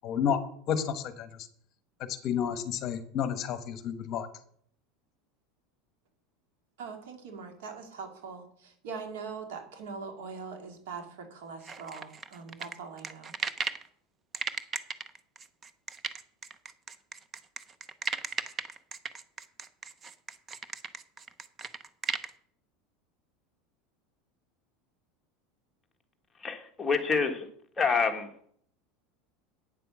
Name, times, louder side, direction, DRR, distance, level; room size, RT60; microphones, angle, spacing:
voice 1, 0.0-0.4 0.7-1.3 2.2-4.3, left 8 dB, 40° left, 11 dB, 1.1 m, -30 dB
voice 2, 6.8-13.3, right 5 dB, 85° right, 5 dB, 2.4 m, -42 dB
sound 1, 11.6-13.9 14.3-22.3, right 5 dB, 25° right, 0.6 m, -36 dB
voice 3, 26.4-27.5 27.8-28.3, left 5 dB, 15° left, 3 dB, 1.4 m, -27 dB
9.0 x 7.7 x 6.2 m, 0.63 s
supercardioid pair, 145°, 0 cm